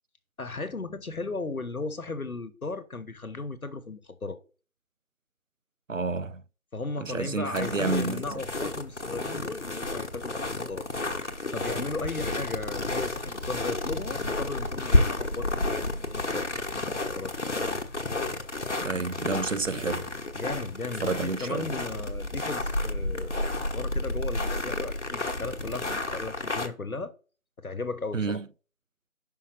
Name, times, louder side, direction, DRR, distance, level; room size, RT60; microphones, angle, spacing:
voice 1, 0.4-4.4 6.7-10.9 11.5-15.7 16.1-17.3 20.3-23.3 23.6-27.1 27.6-28.4, left 3 dB, 85° left, 1.2 m, -36 dB
voice 2, 5.9-6.4 7.0-8.4 18.8-20.1 21.0-21.8 28.1-28.5, right 4 dB, 65° right, 0.5 m, -30 dB
sound 1, 7.5-26.7, left 2 dB, 55° left, 1.2 m, -31 dB
5.6 x 5.1 x 4.4 m
figure-of-eight pair, 175°, 42 cm